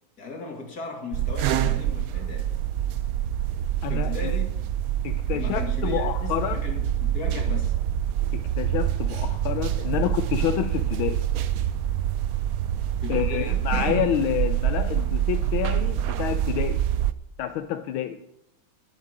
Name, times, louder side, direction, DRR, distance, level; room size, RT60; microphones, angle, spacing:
voice 1, 0.2-2.5 3.9-4.6 5.3-7.8 9.9-10.0 13.0-13.7, left 4 dB, 45° left, 2 dB, 2.9 m, -37 dB
sound 1, 1.1-17.1, right 11 dB, 90° right, 0.7 m, -26 dB
voice 2, 3.8-4.4 5.0-6.6 8.3-11.2 13.1-16.8 17.4-18.2, left 11 dB, 80° left, 9 dB, 1.5 m, -28 dB
10.5 x 8.5 x 9.1 m, 0.81 s
omnidirectional pair, 2.3 m